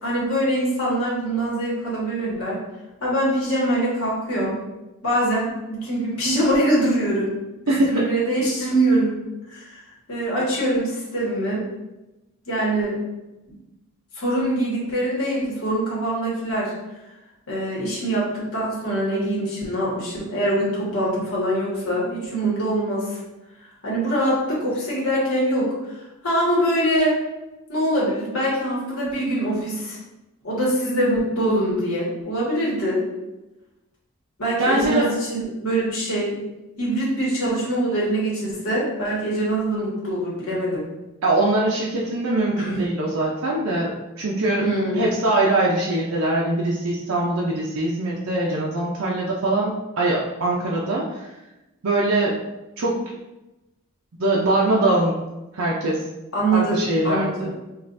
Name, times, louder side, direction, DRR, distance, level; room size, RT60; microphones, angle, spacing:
voice 1, 0.0-2.6 3.0-4.6 5.0-7.3 7.6-9.1 9.5-9.8 10.1-11.6 12.5-13.0 14.1-16.7 17.5-23.2 23.8-26.0 26.2-27.2 27.7-30.0 30.4-33.0 34.4-36.4 36.8-40.9 42.6-42.8 44.6-45.0 56.3-57.5, right 1 dB, 90° left, -6 dB, 1.4 m, -23 dB
voice 2, 7.7-8.0 34.6-35.1 41.2-44.6 45.0-51.3 51.8-52.4 52.8-53.0 54.2-55.1 55.5-56.0 56.5-57.5, right 2 dB, 80° right, -4 dB, 0.6 m, -22 dB
5.3 x 2.4 x 2.6 m, 1.0 s
head